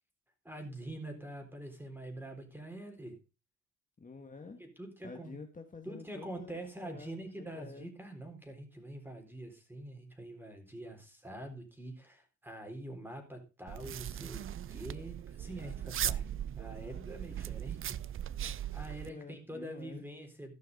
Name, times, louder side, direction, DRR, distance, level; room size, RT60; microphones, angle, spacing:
voice 1, 0.4-3.2 4.6-5.4 5.8-14.4 14.7-16.3 16.5-18.0 18.7-20.5, right 1 dB, 5° right, 5 dB, 4.0 m, -45 dB
voice 2, 4.0-4.6 5.0-7.9 19.0-20.0, left 4 dB, 25° left, 5 dB, 1.6 m, -49 dB
sound 1, 13.7-19.1, right 10 dB, 45° right, 0.5 m, -38 dB
14.5 x 5.8 x 5.3 m, 0.30 s
cardioid pair, 90°, 30 cm